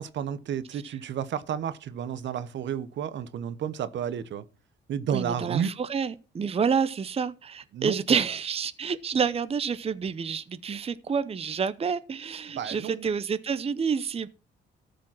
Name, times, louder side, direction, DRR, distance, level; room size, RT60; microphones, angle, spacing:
voice 1, 0.0-4.4 4.9-5.7 7.7-8.2 12.5-13.1, right 8 dB, 65° right, 0.9 m, -31 dB
voice 2, 5.1-14.3, right 6 dB, 30° right, 0.7 m, -28 dB
13.5 x 5.1 x 6.0 m
cardioid pair, 90°, 20 cm